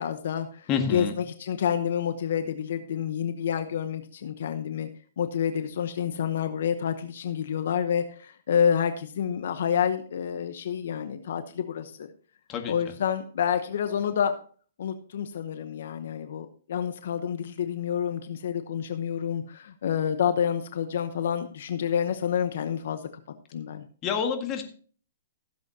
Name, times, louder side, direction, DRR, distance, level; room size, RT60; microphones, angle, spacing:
voice 1, 0.0-4.9 5.2-12.1 12.7-14.3 14.8-23.0 23.5-23.8, left 8 dB, 65° left, 9 dB, 0.9 m, -28 dB
voice 2, 0.7-1.1 12.5-12.7 24.0-24.6, left 6 dB, 25° left, 4 dB, 1.8 m, -27 dB
16.0 x 7.9 x 2.8 m, 0.42 s
hypercardioid pair, 150°, 0 cm